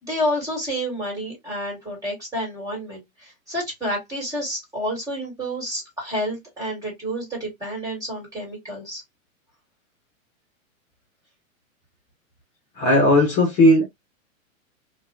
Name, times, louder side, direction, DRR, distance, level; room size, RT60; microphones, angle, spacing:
voice 1, 0.0-9.0, equal, 10° right, 1.8 m, -29 dB
voice 2, 12.7-13.8, left 1 dB, 30° left, 1.0 m, -16 dB
3.0 x 2.3 x 2.4 m
hypercardioid pair, 145°, 41 cm